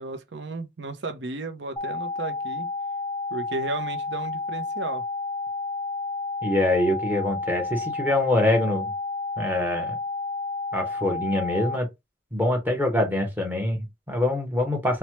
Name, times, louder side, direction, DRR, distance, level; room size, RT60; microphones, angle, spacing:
voice 1, 0.0-2.7 3.3-5.0, right 3 dB, 75° right, 0.6 m, -34 dB
sound 1, 1.8-11.8, left 3 dB, 10° left, 0.6 m, -31 dB
voice 2, 6.4-8.9 9.4-10.0 10.7-11.9 12.3-15.0, left 1 dB, 10° right, 0.9 m, -24 dB
3.1 x 2.2 x 2.9 m
head